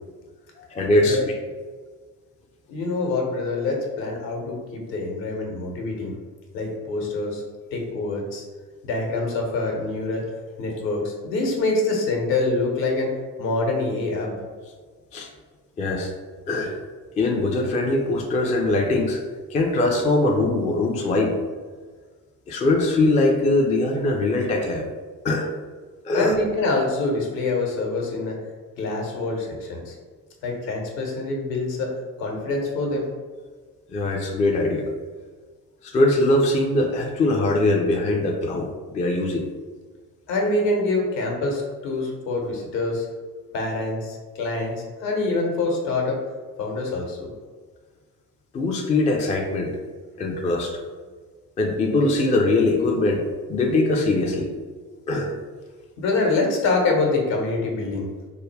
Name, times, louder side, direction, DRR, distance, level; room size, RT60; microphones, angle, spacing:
voice 1, 0.7-1.2 15.1-15.3 15.8-16.1 16.5-16.7 17.2-19.2 19.5-21.4 22.5-24.9 25.2-25.5 26.0-26.4 33.9-34.9 35.8-39.4 48.5-49.7 50.2-50.8 51.6-54.5 55.1-55.3, left 2 dB, 15° left, 1 dB, 0.4 m, -22 dB
voice 2, 2.7-6.1 6.5-7.4 7.7-8.4 8.8-10.2 10.6-13.1 13.4-14.4 26.1-28.4 28.8-29.9 30.4-31.9 32.2-33.0 40.3-43.0 43.5-46.2 46.6-47.3 56.0-58.1, left 3 dB, 65° left, 0 dB, 1.0 m, -25 dB
3.6 x 2.2 x 3.2 m, 1.5 s
figure-of-eight pair, 50°, 49 cm